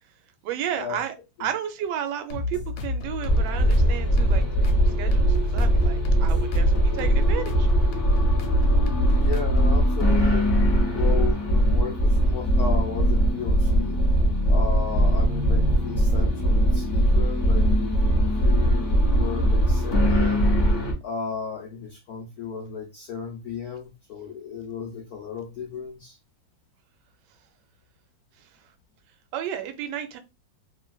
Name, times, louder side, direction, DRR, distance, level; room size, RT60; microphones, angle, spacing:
voice 1, 0.4-1.1 1.4-7.7 29.3-30.2, right 9 dB, 70° right, 7 dB, 1.1 m, -33 dB
sound 1, 2.3-9.8, left 3 dB, 90° left, 1.4 m, -31 dB
sound 2, 3.2-20.9, right 1 dB, 20° left, 0.7 m, -21 dB
voice 2, 9.2-14.0 14.5-17.9 18.4-20.5 21.0-26.2, left 6 dB, 70° left, -1 dB, 0.9 m, -34 dB
3.2 x 2.8 x 2.3 m, 0.26 s
omnidirectional pair, 2.1 m